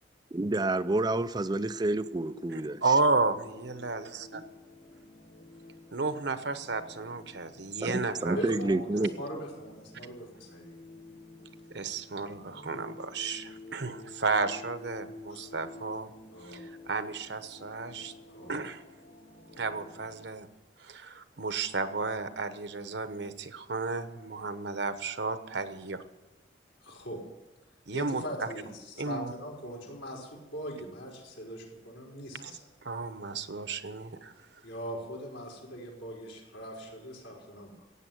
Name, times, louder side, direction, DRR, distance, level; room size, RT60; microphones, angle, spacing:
voice 1, 0.3-2.8 7.8-9.1, right 2 dB, 20° right, 12 dB, 0.4 m, -29 dB
sound 1, 1.6-20.3, left 2 dB, 65° left, 2.4 m, -51 dB
voice 2, 2.5-4.4 5.9-8.4 8.9-9.1 11.7-16.1 16.4-18.1 18.5-18.8 19.6-20.5 20.8-26.0 27.9-28.5 29.0-29.3 32.4-32.5 32.8-34.3, right 3 dB, 65° right, 10 dB, 1.0 m, -32 dB
voice 3, 8.3-10.7 15.3-15.4 16.3-16.6 18.3-18.6 26.8-27.2 27.9-32.6 34.6-37.8, equal, 80° left, -2 dB, 4.9 m, -41 dB
15.5 x 9.1 x 9.2 m, 1.0 s
head